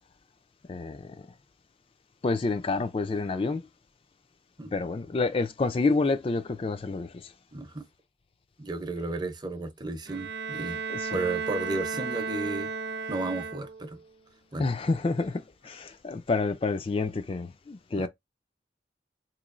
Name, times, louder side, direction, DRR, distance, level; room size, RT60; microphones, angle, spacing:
voice 1, 0.7-1.3 2.2-3.6 4.7-7.3 10.9-11.2 14.6-18.1, left 3 dB, 30° left, 0.3 m, -28 dB
voice 2, 7.5-7.9 8.6-10.8 11.1-12.7 13.1-14.0 14.5-14.7 17.9-18.1, right 2 dB, 25° right, 0.6 m, -33 dB
Bowed string instrument, 10.1-14.0, right 5 dB, 75° right, 0.7 m, -34 dB
4.3 x 3.0 x 2.5 m
head